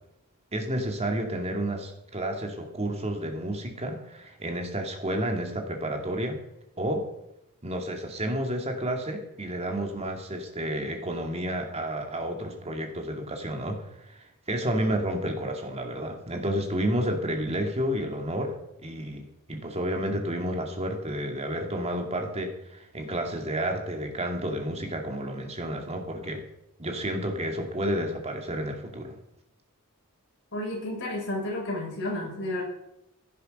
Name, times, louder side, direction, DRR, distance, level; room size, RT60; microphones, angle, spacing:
voice 1, 0.5-6.4 6.8-7.1 7.6-18.6 18.8-26.4 26.8-29.1, right 1 dB, 30° right, 3 dB, 2.3 m, -31 dB
voice 2, 30.5-32.6, left 1 dB, 60° left, -2 dB, 6.0 m, -31 dB
16.0 x 10.0 x 5.4 m, 0.87 s
head